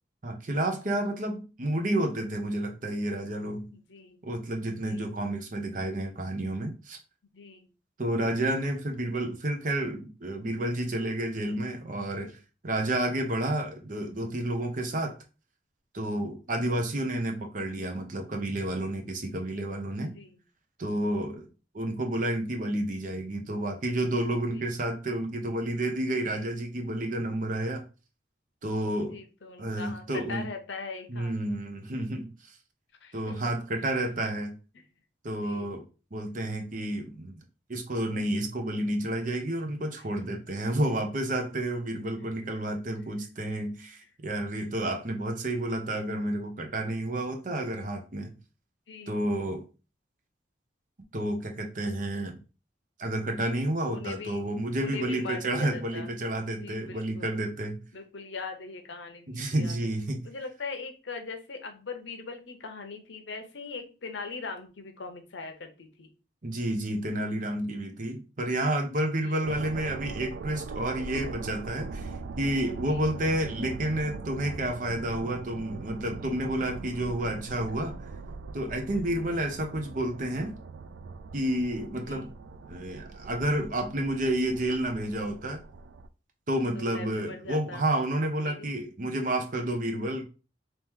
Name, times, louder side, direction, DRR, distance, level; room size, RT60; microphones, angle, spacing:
voice 1, 0.2-3.7 4.2-7.0 8.0-12.3 12.6-15.2 15.9-20.1 20.8-21.5 21.7-27.9 28.6-29.2 29.6-30.5 31.1-32.5 33.1-34.6 35.2-35.8 36.1-37.4 37.7-48.3 49.1-49.6 51.1-52.4 53.0-57.8 59.3-60.2 66.4-72.1 72.4-77.9 78.5-80.6 81.3-82.3 82.7-85.6 86.5-90.3, right 1 dB, 45° right, 0.7 m, -30 dB
voice 2, 3.7-4.2 4.8-5.1 7.3-7.7 16.7-16.8 20.0-20.3 24.5-24.7 29.1-31.3 33.0-33.4 35.3-35.7 40.2-40.3 45.4-45.5 48.9-49.2 53.8-54.5 54.8-56.1 56.6-57.4 57.9-59.8 60.2-66.1 69.2-69.4 72.8-73.0 77.7-77.8 79.2-79.4 82.0-82.3 86.7-87.8 88.4-88.7, left 4 dB, 85° left, 0.8 m, -41 dB
sound 1, 69.4-86.1, right 4 dB, 75° right, 0.3 m, -41 dB
3.0 x 3.0 x 3.5 m
head